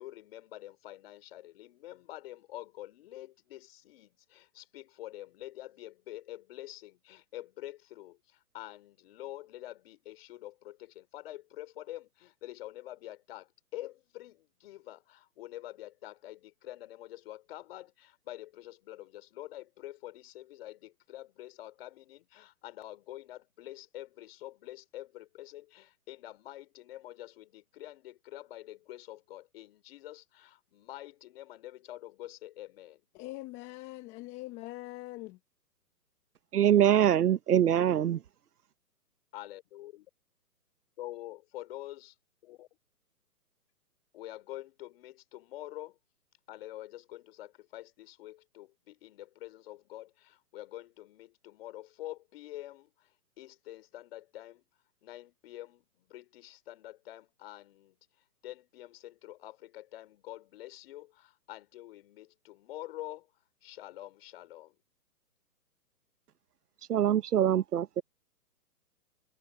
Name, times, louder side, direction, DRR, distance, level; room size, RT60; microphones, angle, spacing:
voice 1, 0.0-33.0 39.3-40.1 41.0-42.1 42.4-42.7 44.1-46.0 46.5-53.1 53.4-54.6 55.0-58.0 58.4-63.3 63.6-64.8, left 15 dB, 40° left, 3.8 m, -46 dB
voice 2, 33.1-35.4, left 20 dB, 15° left, 0.9 m, -42 dB
voice 3, 36.5-38.2 66.9-68.0, right 10 dB, 70° right, 0.9 m, -24 dB
hypercardioid pair, 150°, 47 cm